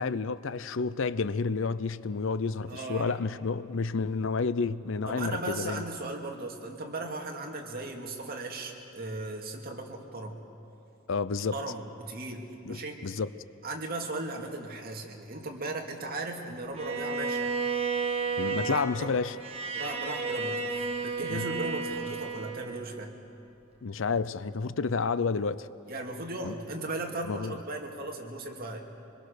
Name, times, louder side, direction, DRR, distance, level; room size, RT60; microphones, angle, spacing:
voice 1, 0.0-5.8 11.1-11.6 12.7-13.3 18.4-19.4 21.3-21.4 23.8-25.7 26.4-26.5 27.3-27.6, left 4 dB, 65° left, 0.6 m, -30 dB
voice 2, 2.7-3.2 5.1-10.4 11.5-13.0 13.6-17.5 18.7-19.1 19.7-23.1 25.9-28.8, right 2 dB, 45° right, 2.5 m, -37 dB
Bowed string instrument, 16.7-23.0, right 4 dB, 30° right, 1.7 m, -32 dB
25.5 x 22.0 x 6.6 m
head